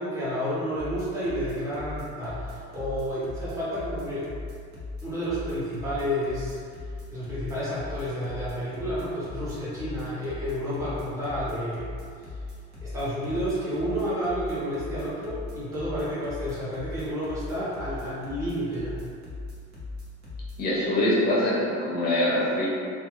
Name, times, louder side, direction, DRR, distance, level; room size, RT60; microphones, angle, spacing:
voice 1, 0.0-4.3 5.0-11.9 12.2-12.4 12.8-19.0, equal, 10° right, -11 dB, 0.6 m, -31 dB
sound 1, 0.7-20.6, left 3 dB, 65° right, 0.8 m, -38 dB
voice 2, 20.6-22.7, left 1 dB, 30° left, -6 dB, 0.5 m, -24 dB
2.3 x 2.2 x 2.9 m, 2.3 s
cardioid pair, 170°, 30 cm